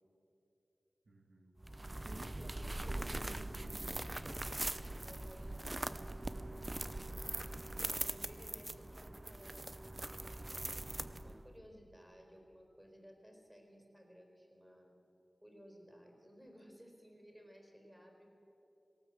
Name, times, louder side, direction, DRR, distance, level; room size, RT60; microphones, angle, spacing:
voice 1, 1.1-1.6 2.0-4.1, right 2 dB, 60° right, 2 dB, 1.8 m, -52 dB
sound 1, 1.6-11.5, right 1 dB, 25° right, 0.8 m, -42 dB
voice 2, 2.4-2.9 5.0-7.3 7.9-10.1 11.2-14.9 15.4-18.3, equal, 10° right, 2 dB, 4.5 m, -58 dB
18.5 x 18.0 x 8.0 m, 3.0 s
wide cardioid pair, 65°, 0 cm